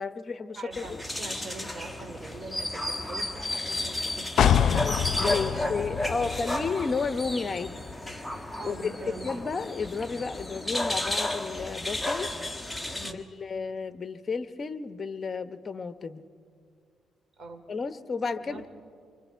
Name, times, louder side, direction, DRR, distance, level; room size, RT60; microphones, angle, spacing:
voice 1, 0.0-1.0 4.4-7.7 8.6-12.3 13.0-16.2 17.7-18.7, left 4 dB, 35° left, 11 dB, 1.0 m, -32 dB
voice 2, 0.5-4.9 5.4-5.9 6.4-6.5 8.5-9.3 12.9-13.2 17.4-17.6 18.4-18.7, right 3 dB, 50° right, 5 dB, 2.8 m, -43 dB
sound 1, 0.7-13.1, left 1 dB, 5° left, 1.6 m, -33 dB
sound 2, 4.4-8.1 8.5-8.6, left 9 dB, 65° left, 0.6 m, -27 dB
30.0 x 24.5 x 4.6 m, 2.2 s
cardioid pair, 90°, 0 cm